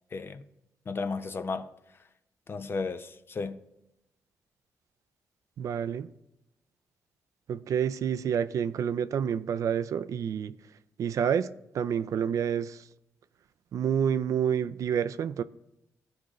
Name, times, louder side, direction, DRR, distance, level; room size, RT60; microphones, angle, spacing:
voice 1, 0.1-0.4 0.9-1.7 2.5-3.6, left 4 dB, 40° left, 0.6 m, -34 dB
voice 2, 5.6-6.1 7.5-10.6 11.0-12.9 13.7-15.4, right 8 dB, 70° right, 0.4 m, -28 dB
14.0 x 5.0 x 3.1 m
cardioid pair, 75°, 6 cm